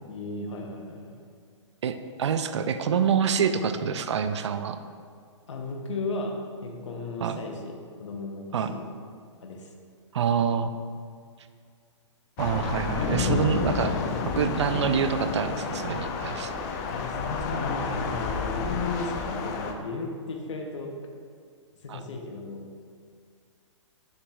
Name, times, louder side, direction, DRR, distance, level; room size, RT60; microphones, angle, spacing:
voice 1, 0.1-1.2 5.5-7.7 8.0-8.9 9.4-9.7 14.6-14.8 16.9-20.9 21.8-22.7, left 3 dB, 70° left, 2 dB, 0.9 m, -35 dB
voice 2, 1.8-4.8 7.2-7.4 8.5-8.7 10.1-10.7 12.4-13.9 14.3-16.5 21.9-22.0, right 7 dB, 65° right, 10 dB, 0.5 m, -26 dB
Thunder / Rain, 12.4-19.7, left 5 dB, 35° left, 0.6 m, -30 dB
7.0 x 6.7 x 2.4 m, 2.1 s
hypercardioid pair, 125°, 16 cm